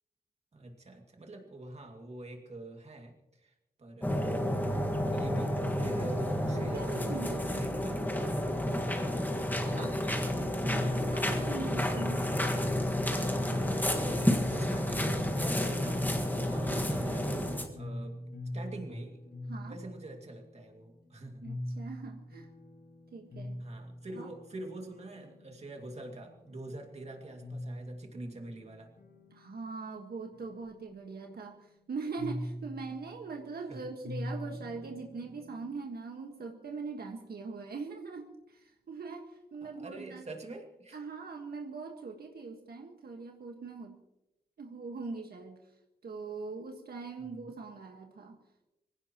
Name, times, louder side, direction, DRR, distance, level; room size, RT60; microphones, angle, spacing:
voice 1, 0.5-3.1 3.4-3.5 3.8-4.5 4.8-8.1 9.7-10.0 13.9-17.3 17.8-18.2 18.5-19.2 19.6-21.4 23.6-28.9 33.7-33.9 39.6-41.0 47.2-47.5, right 2 dB, 40° right, 3 dB, 2.3 m, -45 dB
sound 1, 4.0-17.7, left 1 dB, 10° left, 1.7 m, -30 dB
voice 2, 6.5-7.7 10.4-12.2 19.5-19.8 21.4-22.5 23.1-23.6 24.1-24.3 29.3-40.2 40.9-44.0 44.6-45.6 46.0-48.4, right 4 dB, 70° right, 2 dB, 1.5 m, -41 dB
sound 2, 17.3-35.7, left 1 dB, 75° left, 7.7 m, -44 dB
24.5 x 16.5 x 3.0 m, 0.92 s
wide cardioid pair, 165°, 17 cm